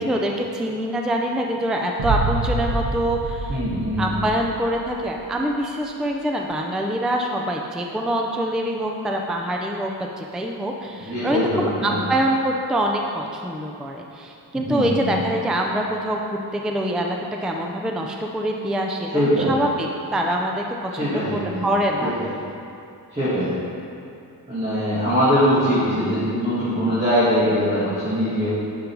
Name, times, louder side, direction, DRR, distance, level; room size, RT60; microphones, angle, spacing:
voice 1, 0.0-20.6 21.0-22.2, right 1 dB, ahead, 1 dB, 0.4 m, -25 dB
Boom, 2.0-5.0, right 3 dB, 65° right, 0.8 m, -26 dB
voice 2, 3.5-4.2 11.0-12.0 14.5-15.2 19.1-19.5 20.9-21.7 22.0-22.3 23.1-23.5 24.5-28.5, equal, 15° right, -12 dB, 1.8 m, -22 dB
10.5 x 5.4 x 4.6 m, 2.6 s
wide cardioid pair, 175°, 38 cm